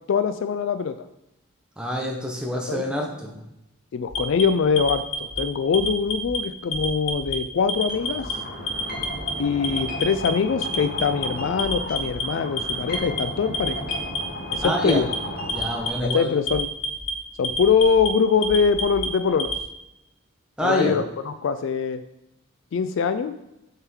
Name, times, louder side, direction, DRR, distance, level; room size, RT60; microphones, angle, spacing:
voice 1, 0.1-1.0 2.7-2.8 3.9-8.3 9.4-13.8 14.5-15.1 16.0-16.7 17.4-19.5 20.6-22.0 22.7-23.3, left 6 dB, 60° left, 11 dB, 0.3 m, -23 dB
voice 2, 1.8-3.4 14.6-15.0 15.5-16.3 20.6-20.9, equal, 5° right, -1 dB, 0.9 m, -26 dB
Alarm, 4.1-5.4 5.7-6.4 6.7-7.4 7.7-8.3 8.7-9.3 9.6-10.3 10.6-11.3 11.6-12.2 12.6-13.2 13.5-14.2 14.5-15.2 15.5-16.1 16.5-17.1 17.4-18.1 18.4-19.6, left 3 dB, 80° left, 0.9 m, -28 dB
sound 1, 7.9-15.9, left 1 dB, 45° left, 1.0 m, -34 dB
6.6 x 4.6 x 3.6 m, 0.89 s
head